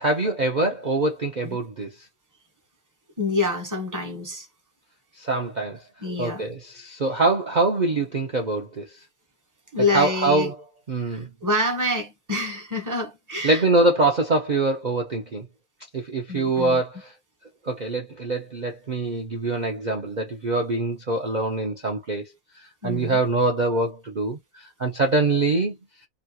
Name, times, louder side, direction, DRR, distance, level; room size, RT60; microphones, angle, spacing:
voice 1, 0.0-1.9 5.2-5.8 6.2-9.0 9.9-10.6 10.9-11.3 13.4-15.5 15.9-17.1 17.6-22.3 22.8-25.8, right 2 dB, 65° right, 0.4 m, -24 dB
voice 2, 3.2-4.5 6.0-6.4 9.7-10.5 11.1-13.6 16.3-16.8 22.8-23.2, left 2 dB, 20° right, 0.6 m, -27 dB
3.1 x 2.4 x 2.7 m
omnidirectional pair, 1.7 m